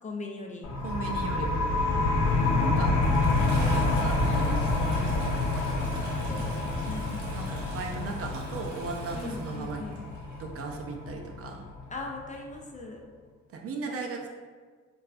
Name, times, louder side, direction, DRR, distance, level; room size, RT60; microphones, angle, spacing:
voice 1, 0.0-0.7 6.3-7.2 9.1-10.0 11.9-13.0 13.9-14.0, left 3 dB, 25° left, 1 dB, 0.4 m, -40 dB
sound 1, 0.6-12.0, left 2 dB, 70° left, 0.7 m, -28 dB
voice 2, 0.8-1.7 2.6-3.0 3.7-5.2 7.0-9.8 10.4-11.7 13.5-14.3, right 4 dB, 50° right, 2 dB, 0.4 m, -37 dB
Toilet flush, 2.0-10.4 11.5-11.6, right 1 dB, 70° right, 0.9 m, -43 dB
3.8 x 2.2 x 2.4 m, 1.5 s
cardioid pair, 90°, 30 cm